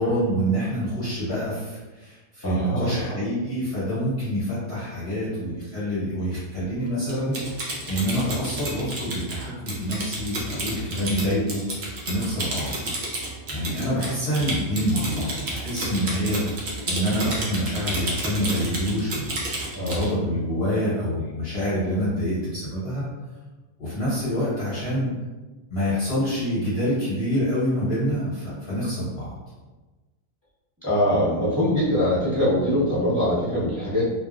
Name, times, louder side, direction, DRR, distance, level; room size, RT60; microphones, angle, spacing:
voice 1, 0.0-11.6 12.1-12.7 13.5-23.0 23.8-25.1 25.7-29.3, equal, 45° left, -11 dB, 1.0 m, -26 dB
voice 2, 2.4-3.1 19.7-20.0 30.8-34.0, equal, 10° right, -12 dB, 1.0 m, -23 dB
Typing, 7.1-20.1, right 2 dB, 55° right, 0.7 m, -31 dB
2.7 x 2.5 x 2.4 m, 1.2 s
omnidirectional pair, 1.7 m